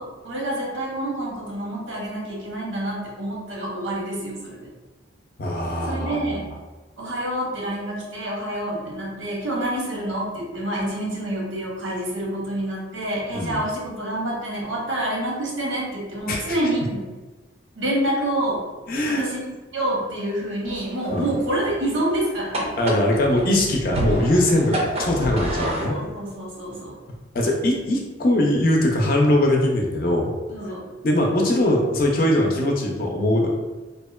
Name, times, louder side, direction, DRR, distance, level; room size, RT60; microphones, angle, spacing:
voice 1, 0.0-4.6 5.8-6.5 7.0-17.0 17.8-18.7 19.0-19.4 19.7-22.7 25.6-27.0 30.5-30.8, right 1 dB, 90° right, -3 dB, 0.8 m, -27 dB
voice 2, 5.4-6.4 13.3-13.6 16.3-16.6 18.9-19.3 21.1-21.3 22.8-25.9 27.3-30.4 31.0-33.5, left 1 dB, 45° left, 0 dB, 0.4 m, -21 dB
sound 1, 20.6-25.9, right 1 dB, 30° right, 0.4 m, -29 dB
2.7 x 2.1 x 2.2 m, 1.2 s
head